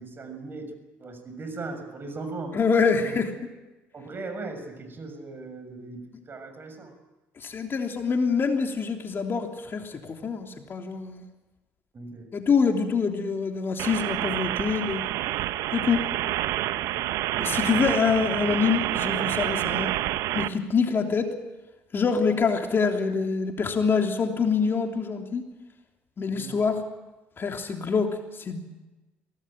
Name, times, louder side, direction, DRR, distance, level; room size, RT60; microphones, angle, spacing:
voice 1, 0.0-2.6 3.0-3.2 3.9-6.9 11.9-12.3 16.8-17.1 26.3-26.6, right 3 dB, 40° right, 8 dB, 6.5 m, -38 dB
voice 2, 2.5-3.3 7.4-11.2 12.3-15.1 15.7-16.1 17.4-19.9 20.3-21.3 21.9-25.4 26.2-26.8 27.4-28.6, left 5 dB, 40° left, 3 dB, 3.2 m, -25 dB
sound 1, 13.8-20.5, right 14 dB, 70° right, 1.0 m, -28 dB
23.5 x 18.0 x 9.0 m, 1.1 s
hypercardioid pair, 60°, 6 cm